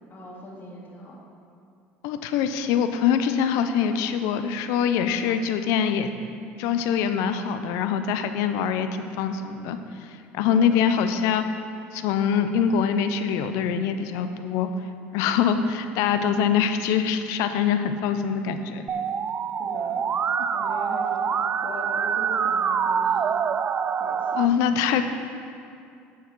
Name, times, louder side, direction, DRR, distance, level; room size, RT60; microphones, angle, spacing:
voice 1, 0.1-1.2 10.5-10.9 19.6-20.1 20.5-23.4 24.0-24.4, left 1 dB, 40° left, -3 dB, 2.2 m, -41 dB
voice 2, 2.0-6.1 6.6-11.4 11.9-14.7 15.1-18.8 24.4-25.0, left 7 dB, 75° left, 9 dB, 0.6 m, -24 dB
Musical instrument, 18.9-24.4, right 7 dB, 35° right, 0.3 m, -25 dB
12.5 x 4.7 x 4.7 m, 2.4 s
supercardioid pair, 90°, 6 cm